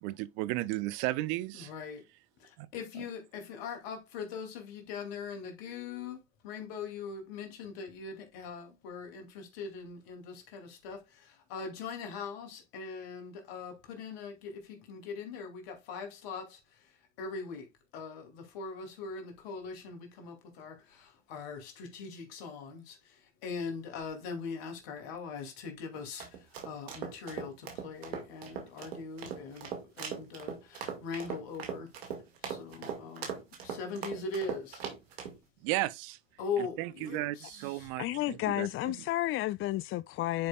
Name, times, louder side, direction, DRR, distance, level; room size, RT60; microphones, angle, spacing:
voice 1, 0.0-1.7 2.6-2.7 2.9-3.0 35.6-36.2 36.6-39.0, right 17 dB, 70° right, 0.7 m, -34 dB
voice 2, 1.5-2.0 2.4-16.6 17.2-17.7 17.9-23.0 23.4-26.2 26.6-31.9 32.4-33.3 33.6-34.8 36.4-37.9, left 5 dB, 75° left, 2.7 m, -41 dB
sound 1, 25.9-35.4, right 7 dB, 85° right, 2.1 m, -40 dB
voice 3, 38.0-40.5, left 15 dB, 45° left, 0.4 m, -32 dB
10.5 x 5.0 x 2.4 m
hypercardioid pair, 65°, 31 cm